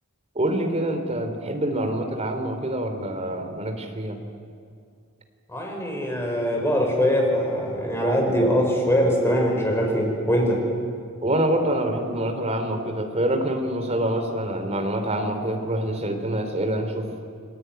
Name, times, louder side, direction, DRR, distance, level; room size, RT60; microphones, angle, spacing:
voice 1, 0.3-4.2 11.2-17.2, right 1 dB, 30° right, 5 dB, 3.1 m, -26 dB
voice 2, 5.5-10.6, equal, 10° left, 1 dB, 5.3 m, -22 dB
29.5 x 21.0 x 9.3 m, 2.3 s
head